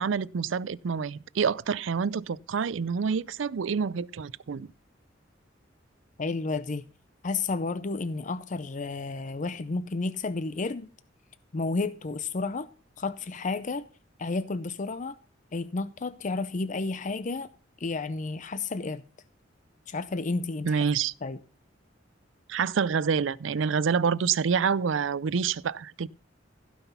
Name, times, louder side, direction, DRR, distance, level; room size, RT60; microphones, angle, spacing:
voice 1, 0.0-4.7 20.6-21.1 22.5-26.1, right 6 dB, 75° right, 0.5 m, -27 dB
voice 2, 6.2-6.8 7.2-10.9 11.5-12.7 13.0-13.8 14.2-15.2 15.5-17.5 17.8-19.0 19.9-20.8 21.2-21.4, left 3 dB, 40° left, 0.6 m, -31 dB
15.5 x 6.0 x 5.6 m
head